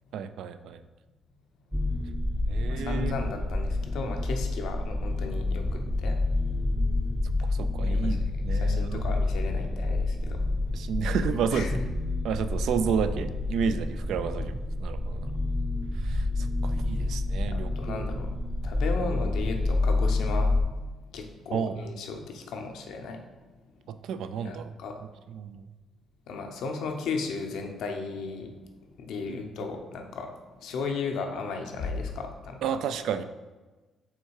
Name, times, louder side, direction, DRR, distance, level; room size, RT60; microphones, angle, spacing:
voice 1, 0.1-0.8 2.5-3.2 7.4-9.1 10.7-11.7 12.2-15.3 16.0-18.2 21.5-21.8 23.9-24.7 25.3-25.7 29.3-29.4 32.6-33.2, right 7 dB, 80° right, 11 dB, 0.3 m, -31 dB
sound 1, 1.7-20.6, left 2 dB, ahead, 0.5 m, -28 dB
voice 2, 2.7-6.2 7.9-10.4 11.5-11.9 17.3-18.3 18.6-20.6 21.1-23.2 24.4-25.0 26.3-28.5 29.0-32.6, left 4 dB, 80° left, 4 dB, 0.8 m, -35 dB
5.5 x 3.6 x 4.7 m, 1.2 s
cardioid pair, 90°, 0 cm